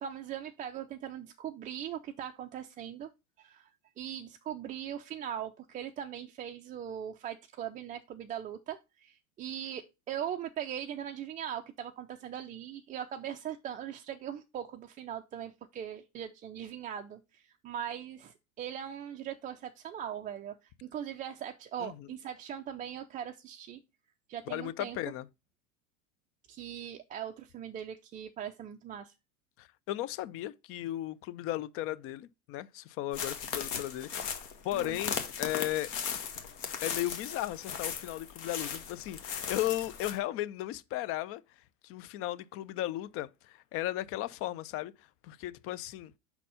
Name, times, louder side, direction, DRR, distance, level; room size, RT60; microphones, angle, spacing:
voice 1, 0.0-3.1 3.4-3.7 4.0-23.8 24.3-25.0 26.5-29.1 34.7-35.0, right 9 dB, 20° right, 0.4 m, -40 dB
voice 2, 24.5-25.3 29.6-35.9 36.8-41.4 41.8-46.1, left 14 dB, 35° left, 0.5 m, -36 dB
sound 1, 33.1-40.2, left 7 dB, 55° left, 1.6 m, -37 dB
5.7 x 4.1 x 5.5 m
hypercardioid pair, 95°, 42 cm